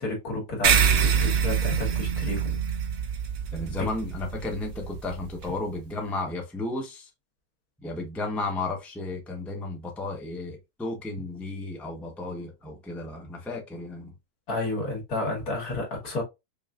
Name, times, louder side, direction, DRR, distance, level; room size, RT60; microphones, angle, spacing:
voice 1, 0.0-2.6 14.5-16.2, left 2 dB, 70° left, 2.1 m, -31 dB
sound 1, 0.6-5.5, right 7 dB, 55° right, 0.8 m, -25 dB
voice 2, 3.5-7.1 7.8-14.1, left 2 dB, ahead, 0.7 m, -33 dB
5.4 x 2.6 x 2.4 m
omnidirectional pair, 1.7 m